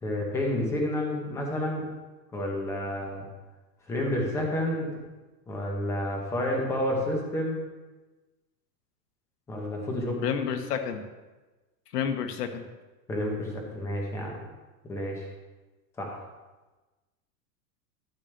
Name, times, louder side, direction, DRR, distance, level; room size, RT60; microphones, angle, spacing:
voice 1, 0.0-1.9 2.3-3.2 3.9-4.9 5.5-7.6 9.5-10.2 13.1-14.3 14.9-15.3 16.0-16.2, left 1 dB, 5° left, 0 dB, 0.7 m, -30 dB
voice 2, 10.2-11.0 11.9-12.6, left 7 dB, 85° left, 7 dB, 1.4 m, -29 dB
12.5 x 8.2 x 3.2 m, 1.2 s
supercardioid pair, 180°, 46 cm